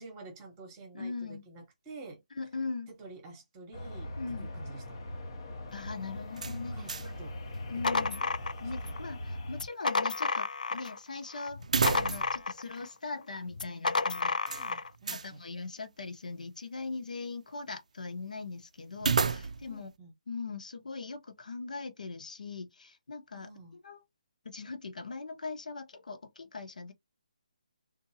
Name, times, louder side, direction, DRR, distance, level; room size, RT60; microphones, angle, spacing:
voice 1, 0.0-2.2 2.9-5.0 6.7-7.6 7.9-8.1 8.8-8.9 14.5-15.4 19.7-20.1 23.3-23.8, right 3 dB, 10° right, 1.0 m, -49 dB
voice 2, 0.9-1.4 2.4-2.9 4.2-4.5 5.7-6.8 7.7-8.2 8.6-14.4 15.1-19.9 20.3-23.5 23.8-24.0 24.4-26.9, left 4 dB, 70° left, 1.0 m, -40 dB
sound 1, 3.7-9.7, left 1 dB, 30° left, 0.6 m, -41 dB
sound 2, 6.3-7.2 7.5-7.6 11.6-12.5 12.8-12.9 14.5-15.3 19.0-19.8, right 5 dB, 60° right, 0.4 m, -31 dB
sound 3, 7.5-9.0 9.5-11.0 11.3-12.9 13.5-14.9, left 4 dB, 90° left, 0.4 m, -31 dB
3.8 x 2.6 x 2.7 m
hypercardioid pair, 175°, 4 cm